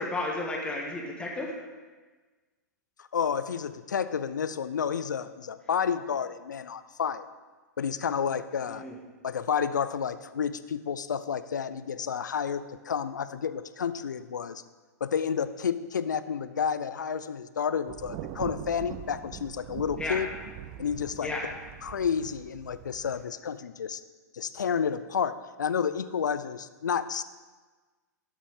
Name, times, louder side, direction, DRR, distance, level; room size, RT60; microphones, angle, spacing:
voice 1, 0.0-1.5 8.7-8.9 20.0-20.2 21.2-21.5, left 2 dB, 10° left, -1 dB, 1.5 m, -32 dB
voice 2, 3.0-7.3 7.8-8.8 9.2-14.6 15.0-20.3 20.8-21.6 21.8-24.0 24.3-27.2, left 7 dB, 80° left, 13 dB, 0.5 m, -30 dB
Thunder, 17.9-23.2, right 12 dB, 40° right, 0.5 m, -42 dB
12.0 x 7.3 x 3.6 m, 1.3 s
figure-of-eight pair, 105°, 10 cm